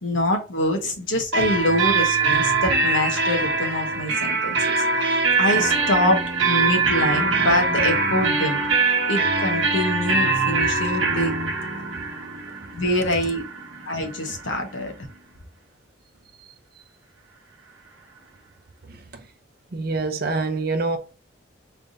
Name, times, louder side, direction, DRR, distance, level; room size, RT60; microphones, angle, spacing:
voice 1, 0.0-4.7 5.4-8.6 9.1-11.3 12.7-13.4 13.8-14.9, left 1 dB, 70° left, 0.9 m, -24 dB
sound 1, 1.3-14.9, right 4 dB, 75° right, 0.9 m, -23 dB
voice 2, 19.7-21.0, right 3 dB, 50° right, 0.5 m, -25 dB
3.3 x 2.6 x 3.9 m
head